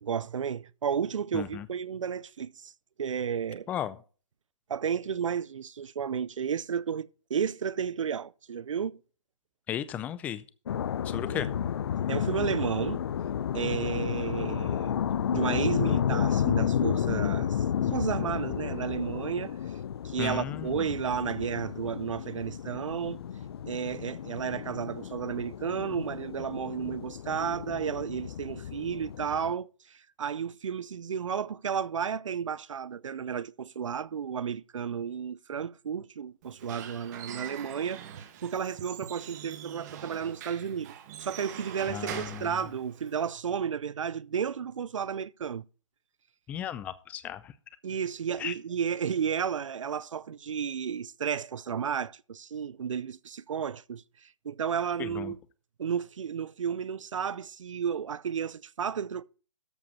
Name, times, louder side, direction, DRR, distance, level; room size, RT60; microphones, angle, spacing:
voice 1, 0.0-2.7 3.0-3.7 4.7-9.0 11.3-11.5 12.1-13.0 13.5-15.0 15.3-19.5 20.0-23.2 23.7-40.9 41.2-45.6 47.8-55.4 55.8-59.2, right 7 dB, 75° right, 0.5 m, -32 dB
voice 2, 1.3-1.7 3.7-4.0 9.7-10.4 11.0-11.5 20.2-20.9 41.9-42.6 46.5-47.5 48.4-48.5 55.0-55.3, left 10 dB, 10° left, 0.4 m, -35 dB
sound 1, 10.7-29.5, left 9 dB, 50° left, 0.6 m, -32 dB
Squeak / Wood, 36.4-43.3, right 9 dB, 35° right, 1.4 m, -43 dB
13.0 x 5.0 x 5.5 m
hypercardioid pair, 150°, 16 cm